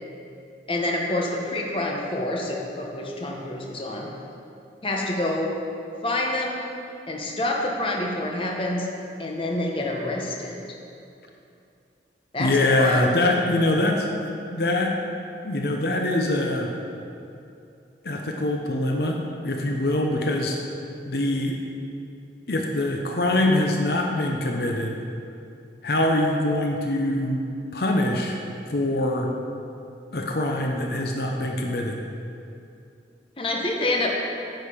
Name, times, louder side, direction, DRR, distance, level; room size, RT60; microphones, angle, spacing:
voice 1, 0.7-4.1 4.8-5.5 6.0-6.7 7.1-8.9 9.2-10.6 12.3-13.0 33.4-34.1, left 1 dB, 30° left, 0 dB, 0.9 m, -27 dB
voice 2, 12.4-14.9 15.4-16.7 18.0-20.6 21.0-21.6 22.5-25.0 25.8-27.4 27.7-28.4 28.7-29.3 30.1-32.0, left 1 dB, 65° left, 1 dB, 0.7 m, -24 dB
10.0 x 6.5 x 5.0 m, 2.6 s
head